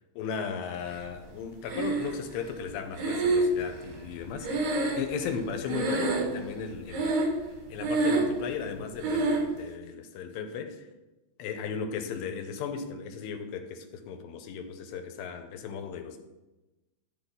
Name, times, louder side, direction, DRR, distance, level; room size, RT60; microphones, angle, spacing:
voice 1, 0.2-7.2 7.7-10.9 11.4-16.2, left 6 dB, 80° left, 2.6 m, -36 dB
Breathing, 1.7-2.4 3.0-5.4 5.7-6.5 6.9-7.5 7.8-8.4 9.0-9.5, right 2 dB, 70° right, 3.2 m, -27 dB
11.5 x 4.3 x 5.3 m
omnidirectional pair, 5.1 m